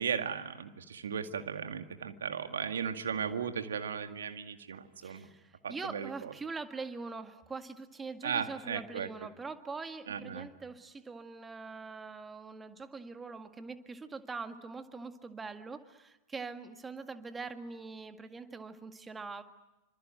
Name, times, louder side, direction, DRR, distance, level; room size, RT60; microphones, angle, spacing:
voice 1, 0.0-5.3 5.6-6.1 8.2-9.1 10.1-10.5, right 7 dB, 65° right, 8 dB, 2.0 m, -36 dB
voice 2, 5.0-19.4, right 4 dB, 15° right, 9 dB, 1.9 m, -43 dB
28.0 x 26.0 x 7.7 m, 1.0 s
figure-of-eight pair, 90°, 0 cm